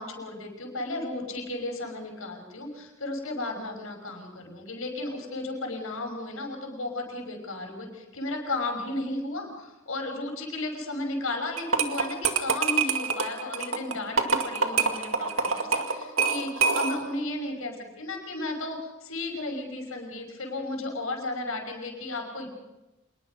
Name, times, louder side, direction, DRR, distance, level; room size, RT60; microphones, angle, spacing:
voice 1, 0.0-22.5, left 2 dB, 80° left, 3 dB, 5.7 m, -34 dB
sound 1, 11.6-17.1, right 5 dB, 75° right, 2.1 m, -26 dB
26.5 x 21.0 x 5.3 m, 1.0 s
head